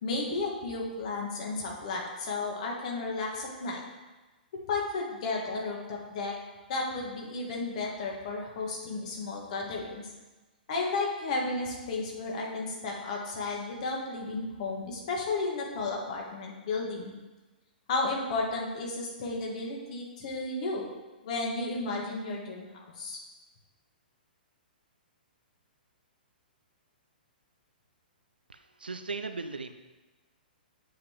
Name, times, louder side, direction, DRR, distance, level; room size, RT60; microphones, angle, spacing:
voice 1, 0.0-3.8 4.7-6.4 6.7-10.0 10.7-17.1 17.9-20.9 21.2-23.2, left 3 dB, 45° left, -2 dB, 1.7 m, -33 dB
voice 2, 28.5-29.7, right 4 dB, 75° right, 9 dB, 0.5 m, -37 dB
8.6 x 7.4 x 3.0 m, 1.2 s
figure-of-eight pair, 115°, 5 cm